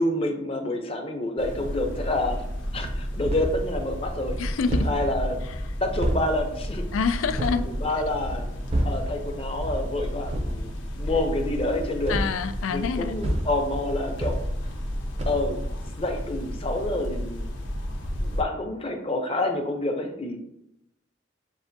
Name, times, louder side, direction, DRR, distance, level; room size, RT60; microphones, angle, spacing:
voice 1, 0.0-2.4 2.7-4.4 4.8-5.4 5.8-6.9 7.8-8.5 8.8-12.2 12.7-14.4 15.3-15.6 16.0-17.5 18.2-20.4, left 1 dB, 30° left, 4 dB, 0.6 m, -28 dB
sound 1, 1.4-18.4, equal, 70° left, 0.7 m, -33 dB
sound 2, 2.8-3.7 4.0-7.7 8.1-9.1 9.5-9.9 10.2-10.6 11.4-14.9 15.2-15.5, right 1 dB, 30° right, 0.5 m, -30 dB
voice 2, 4.4-4.9 5.4-5.6 6.9-7.7 10.5-10.6 12.1-13.2, left 5 dB, 90° left, 10 dB, 0.4 m, -27 dB
7.0 x 2.5 x 2.6 m, 0.78 s
head